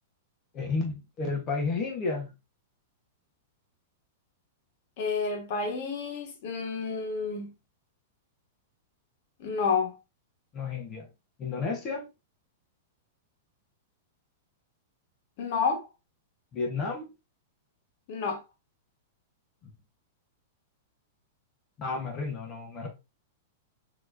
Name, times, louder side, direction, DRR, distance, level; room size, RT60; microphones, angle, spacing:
voice 1, 0.5-2.3 10.5-11.1 11.4-12.0 16.5-17.1 19.6-19.7 21.8-22.9, left 4 dB, 25° left, 1.0 m, -32 dB
voice 2, 5.0-7.5 9.4-10.0 15.4-15.9 18.1-18.4, left 5 dB, 55° left, 1.4 m, -30 dB
4.2 x 3.0 x 2.5 m
supercardioid pair, 150°, 0 cm